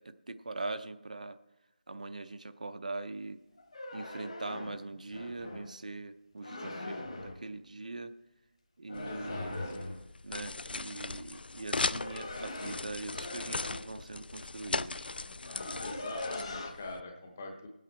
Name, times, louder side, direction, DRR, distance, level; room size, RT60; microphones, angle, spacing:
voice 1, 0.0-1.4 1.9-3.4 3.9-8.1 8.8-10.0 10.2-15.1, right 2 dB, 50° right, 11 dB, 0.5 m, -42 dB
sound 1, 3.6-5.7 6.4-7.5 8.9-10.1 11.6-13.9 14.8-14.9 15.1-16.7, left 2 dB, 35° left, 1.1 m, -41 dB
sound 2, 9.0-17.0, left 3 dB, 75° left, 0.4 m, -38 dB
voice 2, 9.0-9.8 15.8-17.7, left 2 dB, 15° left, 3 dB, 0.7 m, -43 dB
18.0 x 8.3 x 4.3 m, 0.94 s
figure-of-eight pair, 180°, 5 cm